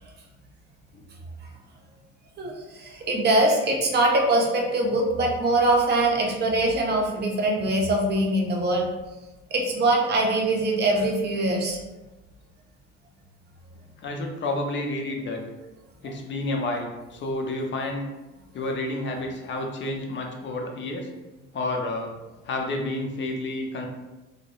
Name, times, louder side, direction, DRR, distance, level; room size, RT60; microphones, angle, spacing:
voice 1, 2.4-8.9 9.5-11.8, right 2 dB, 30° right, 0 dB, 0.6 m, -23 dB
voice 2, 14.0-15.4 16.0-18.0 18.5-21.1 21.5-22.1 22.4-23.9, left 2 dB, 35° left, 2 dB, 0.5 m, -30 dB
2.2 x 2.0 x 2.9 m, 1.1 s
hypercardioid pair, 65°, 35 cm